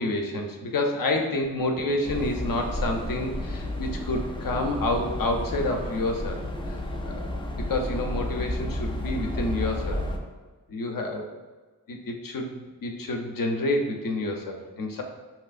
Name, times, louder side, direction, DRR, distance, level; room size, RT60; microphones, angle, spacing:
voice 1, 0.0-6.8 7.0-7.3 7.6-10.0 10.7-11.3 11.9-15.0, left 2 dB, 70° left, 3 dB, 0.7 m, -29 dB
sound 1, 2.0-10.2, left 1 dB, 15° left, 0.3 m, -32 dB
5.5 x 3.0 x 2.5 m, 1.3 s
wide cardioid pair, 140°, 35 cm